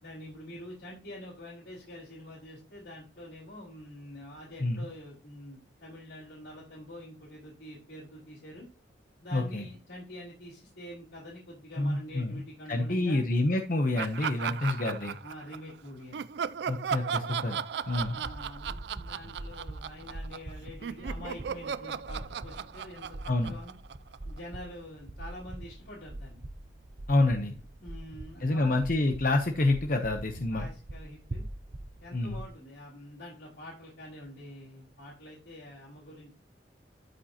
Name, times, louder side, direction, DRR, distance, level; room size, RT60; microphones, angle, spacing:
voice 1, 0.0-8.7 9.2-13.2 15.2-16.2 18.1-23.7 24.2-26.4 27.5-28.8 30.5-31.4 32.0-36.3, left 1 dB, 75° left, -7 dB, 4.1 m, -46 dB
voice 2, 9.3-9.7 11.8-12.3 12.7-15.2 16.7-18.2 23.3-23.5 27.1-27.5 28.4-30.7 32.1-32.4, left 2 dB, 45° left, 4 dB, 0.9 m, -28 dB
Laughter, 14.0-15.7 16.1-20.5 20.8-24.4, right 7 dB, 65° right, 0.3 m, -36 dB
sound 1, 17.8-32.5, right 1 dB, 45° right, 0.8 m, -43 dB
12.5 x 5.2 x 2.9 m, 0.35 s
head